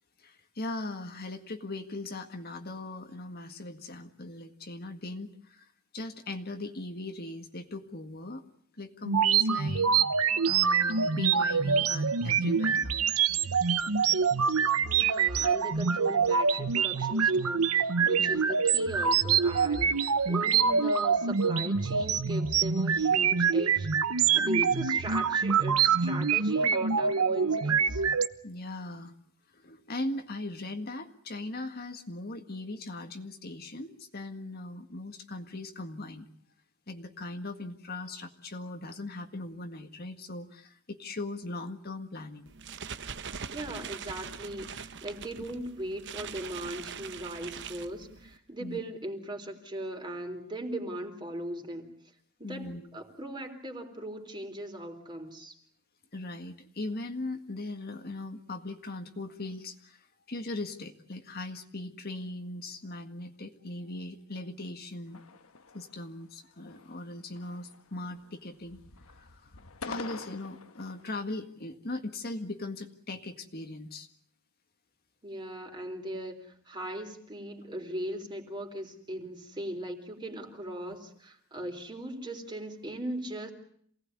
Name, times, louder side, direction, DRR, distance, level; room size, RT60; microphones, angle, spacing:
voice 1, 0.2-8.4 8.8-9.9 10.4-12.9 18.2-18.4 24.4-24.7 28.4-29.1 29.5-36.3 36.9-42.5 48.6-48.8 52.4-53.0 56.1-65.2 65.7-68.8 69.2-69.6 69.9-74.1, left 2 dB, 45° left, 5 dB, 1.8 m, -39 dB
sound 1, 9.1-28.3, right 6 dB, 85° right, 1.1 m, -25 dB
voice 2, 14.8-23.9 24.3-28.0 43.5-51.9 52.4-55.6 75.2-76.4 76.7-83.5, right 1 dB, 20° right, 4 dB, 3.8 m, -38 dB
sound 2, 42.5-48.4, right 6 dB, 55° right, 1.0 m, -42 dB
sound 3, 65.1-66.2 66.6-67.1 67.3-68.3 68.6-71.2, left 4 dB, 70° left, 1.4 m, -46 dB
28.0 x 18.5 x 9.7 m, 0.64 s
head